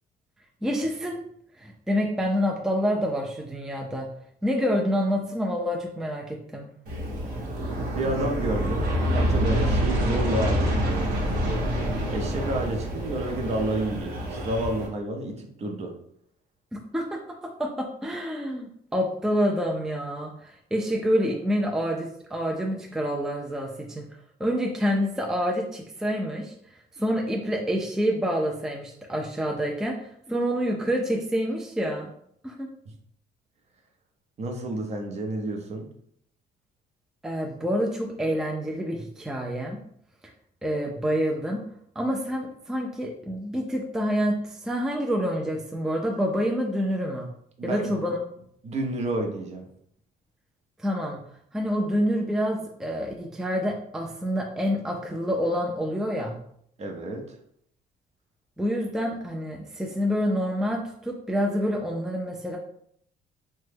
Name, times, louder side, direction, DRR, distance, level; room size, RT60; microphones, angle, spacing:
voice 1, 0.6-1.2 1.6-4.1 4.4-6.7 16.7-24.1 24.4-26.5 27.0-30.0 30.3-32.1 32.4-32.7 37.2-39.8 40.6-41.6 42.0-47.3 47.6-48.2 50.8-51.2 51.5-56.4 58.6-62.6, equal, 5° right, 0 dB, 0.4 m, -27 dB
Aircraft, 6.9-14.9, equal, 65° right, 0.9 m, -27 dB
voice 2, 7.9-8.9 9.1-11.7 12.1-15.9 32.9-33.0 34.4-35.9 47.6-47.9 48.6-49.6 56.8-57.2, right 1 dB, 40° right, 2 dB, 0.6 m, -30 dB
3.0 x 2.2 x 3.3 m, 0.67 s
cardioid pair, 110°, 17 cm